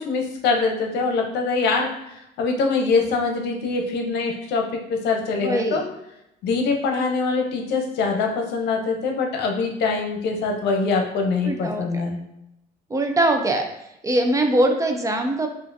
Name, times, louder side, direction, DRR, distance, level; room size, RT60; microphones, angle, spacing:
voice 1, 0.1-1.9 2.4-4.6 4.9-5.8 6.4-12.2, left 4 dB, 80° left, 2 dB, 0.7 m, -23 dB
voice 2, 5.4-5.9 11.4-12.0 12.9-13.6 14.0-15.5, right 1 dB, 20° right, 4 dB, 0.4 m, -22 dB
4.8 x 2.5 x 2.6 m, 0.83 s
cardioid pair, 110°, 17 cm